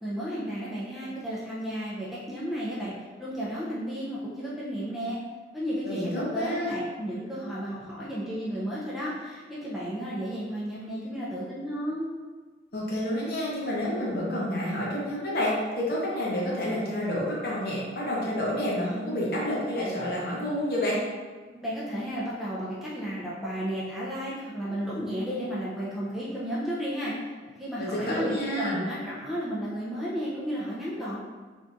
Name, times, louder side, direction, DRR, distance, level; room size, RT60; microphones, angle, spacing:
voice 1, 0.0-2.9 3.2-5.2 5.5-12.1 21.4-27.1 27.6-31.2, equal, ahead, -8 dB, 0.4 m, -33 dB
voice 2, 5.9-6.8 12.7-21.0 27.8-28.8, left 1 dB, 50° left, -5 dB, 0.8 m, -29 dB
3.4 x 2.7 x 2.5 m, 1.4 s
head